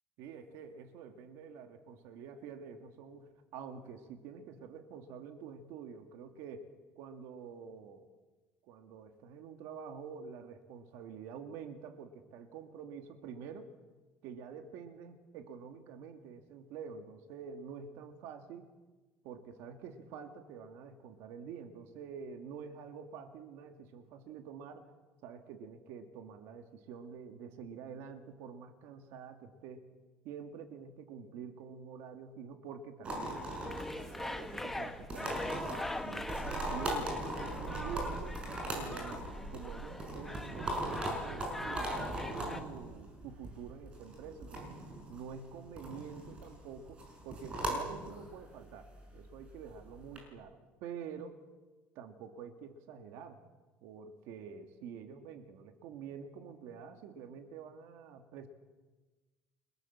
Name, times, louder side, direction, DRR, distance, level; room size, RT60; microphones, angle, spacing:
voice 1, 0.2-6.7 7.0-8.1 8.6-13.7 14.2-18.7 19.2-24.9 25.2-29.9 30.2-33.6 34.0-36.4 36.6-38.4 38.7-44.8 45.1-51.4 52.0-53.4 53.8-58.5, right 6 dB, 70° right, 6 dB, 2.3 m, -47 dB
sound 1, 33.0-50.2, right 1 dB, 25° right, 6.6 m, -40 dB
sound 2, 33.3-42.6, left 1 dB, 5° left, 1.1 m, -42 dB
30.0 x 19.5 x 7.4 m, 1.2 s
cardioid pair, 165°, 5 cm